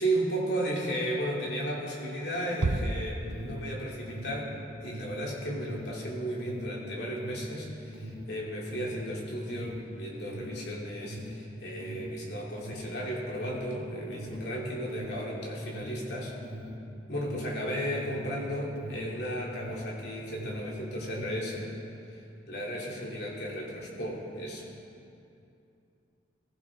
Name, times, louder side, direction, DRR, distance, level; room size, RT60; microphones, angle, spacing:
voice 1, 0.0-4.5 4.8-16.4 17.1-21.8 22.5-24.6, right 1 dB, 60° left, -4 dB, 3.2 m, -34 dB
Alarm, 2.4-20.0 20.2-21.5, equal, 65° right, 3.2 m, -41 dB
Bass drum, 2.6-4.0, right 2 dB, 80° right, 0.6 m, -32 dB
22.0 x 16.0 x 3.9 m, 2.6 s
head